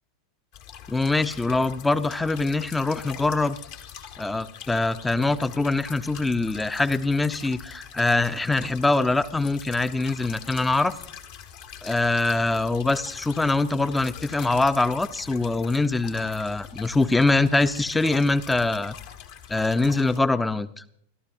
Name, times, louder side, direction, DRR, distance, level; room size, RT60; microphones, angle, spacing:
sound 1, 0.5-20.2, left 9 dB, 50° left, 1.3 m, -43 dB
voice 1, 0.9-3.6 4.2-10.9 11.8-18.9 19.5-20.8, left 2 dB, 10° left, 16 dB, 0.6 m, -23 dB
29.5 x 13.0 x 2.7 m, 0.70 s
figure-of-eight pair, 90°, 0 cm